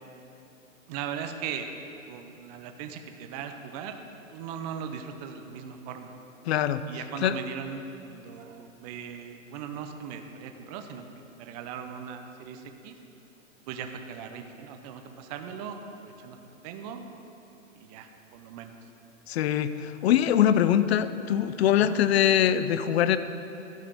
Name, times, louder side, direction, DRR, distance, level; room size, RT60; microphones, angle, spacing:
voice 1, 0.9-1.7 2.1-6.2 6.9-11.0 11.4-13.0 13.7-16.4 16.6-17.1 17.7-18.7 21.8-22.0, right 7 dB, 30° right, 6 dB, 0.6 m, -39 dB
voice 2, 6.5-6.8 7.2-7.4 19.3-23.2, left 10 dB, 55° left, 13 dB, 0.5 m, -23 dB
12.0 x 4.9 x 5.4 m, 3.0 s
hypercardioid pair, 125°, 39 cm